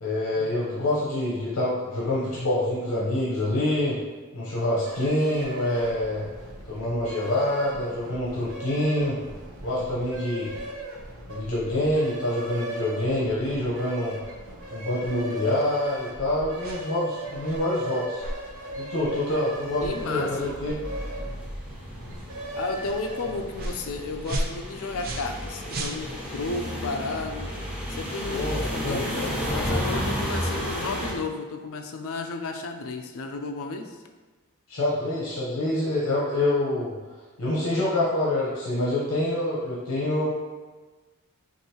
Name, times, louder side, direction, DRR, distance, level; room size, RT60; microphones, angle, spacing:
voice 1, 0.0-4.0 4.3-6.2 6.7-9.2 9.6-10.5 11.3-14.2 14.7-18.2 18.8-20.7 28.3-29.0 34.7-36.9 37.4-40.3, left 1 dB, 85° left, -7 dB, 1.0 m, -26 dB
sound 1, 4.8-24.3, right 1 dB, 65° right, 1.1 m, -38 dB
sound 2, 16.6-16.9 17.4-17.7 18.2-18.4 19.0-19.2 19.8-20.0 20.6-20.8 21.4-21.6 22.1-22.2 22.8-23.0 23.6-23.8 24.2-25.4 25.7-26.4, right 1 dB, 45° right, 0.5 m, -34 dB
sound 3, 19.6-31.1, equal, 5° right, 0.7 m, -33 dB
voice 2, 19.8-20.4 22.5-27.5 27.9-34.0, left 3 dB, 70° left, 5 dB, 0.5 m, -33 dB
6.4 x 2.6 x 3.0 m, 1.3 s
head